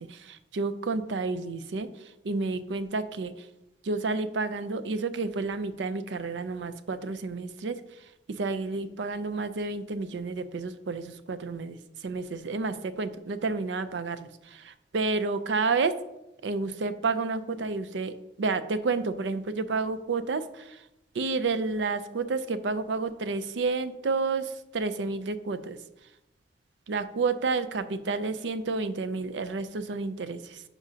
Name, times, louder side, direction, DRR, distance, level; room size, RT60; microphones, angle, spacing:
voice 1, 0.0-1.9 2.2-3.5 3.8-7.8 8.4-15.9 16.4-20.8 21.1-25.8 26.9-30.6, right 4 dB, 85° right, 11 dB, 0.5 m, -30 dB
9.8 x 4.9 x 2.8 m, 0.91 s
head